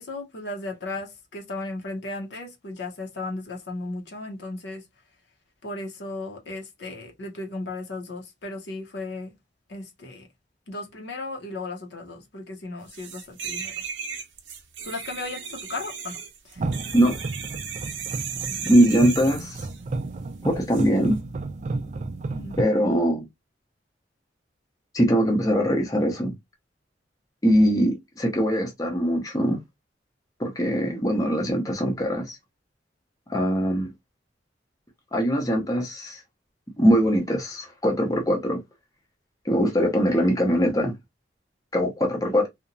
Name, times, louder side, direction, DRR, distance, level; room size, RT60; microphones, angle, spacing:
voice 1, 0.0-4.8 5.6-9.3 9.7-10.3 10.7-13.7 14.8-16.7 18.5-18.7 22.3-22.6, left 2 dB, 65° left, 0.7 m, -35 dB
sound 1, 12.9-19.8 20.7-20.9, right 7 dB, 75° right, 0.7 m, -36 dB
sound 2, 16.6-22.6, right 3 dB, 40° right, 0.3 m, -32 dB
voice 2, 18.7-19.6 20.4-21.2 22.6-23.2 24.9-26.3 27.4-29.6 30.4-32.4 33.3-33.9 35.1-36.2 36.8-38.6 39.4-40.9 41.7-42.5, equal, 20° left, 0.6 m, -22 dB
2.8 x 2.1 x 2.5 m
head